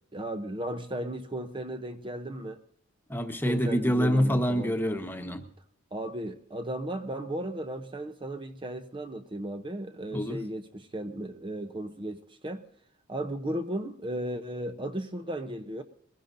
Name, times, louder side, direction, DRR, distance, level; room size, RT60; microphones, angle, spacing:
voice 1, 0.1-2.6 3.4-4.7 5.9-12.6 13.1-15.8, right 1 dB, 25° right, 8 dB, 0.7 m, -35 dB
voice 2, 3.1-5.4 10.1-10.4, equal, 10° left, 5 dB, 1.2 m, -26 dB
22.0 x 16.5 x 2.6 m, 0.68 s
head